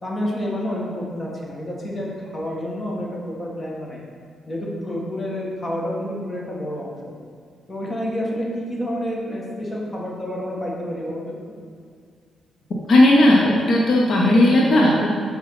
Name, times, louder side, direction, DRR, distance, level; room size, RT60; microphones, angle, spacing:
voice 1, 0.0-4.0 4.5-6.9 7.7-11.3, equal, 20° left, -3 dB, 1.4 m, -29 dB
voice 2, 12.9-15.1, left 1 dB, 50° left, -2 dB, 0.8 m, -15 dB
5.7 x 4.5 x 5.7 m, 2.1 s
cardioid pair, 130°, 0 cm